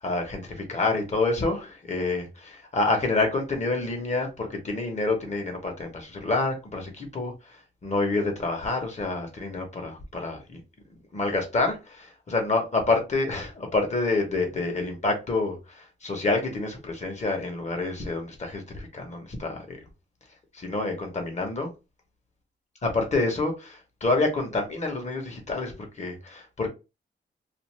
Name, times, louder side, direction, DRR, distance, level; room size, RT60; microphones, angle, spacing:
voice 1, 0.0-10.6 11.1-19.8 20.5-21.7 22.8-26.7, left 3 dB, 35° left, 0.9 m, -28 dB
2.5 x 2.4 x 3.1 m
wide cardioid pair, 150°, 20 cm